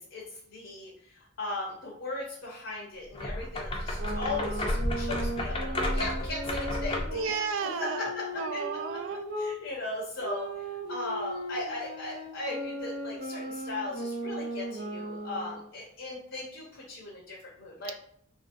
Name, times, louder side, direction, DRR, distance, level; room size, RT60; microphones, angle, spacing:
voice 1, 0.0-7.3 7.8-8.7 9.4-17.9, left 2 dB, 70° left, -3 dB, 0.7 m, -37 dB
sound 1, 3.1-7.2, left 1 dB, 25° left, 0.4 m, -32 dB
sound 2, 4.0-9.5 10.2-15.7, right 1 dB, 55° right, 0.8 m, -37 dB
voice 2, 7.1-9.2, right 5 dB, 85° right, 8 dB, 0.3 m, -33 dB
2.7 x 2.6 x 2.6 m, 0.65 s
head